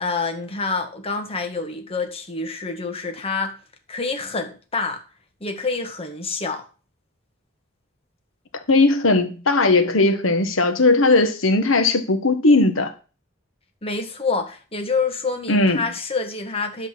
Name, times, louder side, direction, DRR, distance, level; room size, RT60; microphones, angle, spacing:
voice 1, 0.0-3.5 3.9-5.0 5.4-6.6 13.8-16.9, left 4 dB, 30° left, 1.7 m, -27 dB
voice 2, 8.7-12.9 15.5-15.8, left 2 dB, 80° left, 1.4 m, -18 dB
11.0 x 4.0 x 7.6 m
head